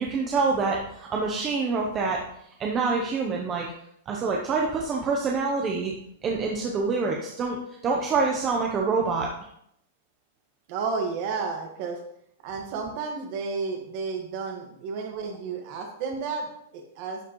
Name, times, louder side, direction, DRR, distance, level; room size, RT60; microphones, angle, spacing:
voice 1, 0.0-2.2 2.6-3.7 4.1-5.9 6.2-9.3, right 4 dB, 20° right, 0 dB, 0.7 m, -26 dB
voice 2, 10.7-12.0 12.4-17.3, right 4 dB, 35° right, 3 dB, 1.5 m, -32 dB
12.0 x 4.9 x 3.1 m, 0.73 s
supercardioid pair, 170°, 0 cm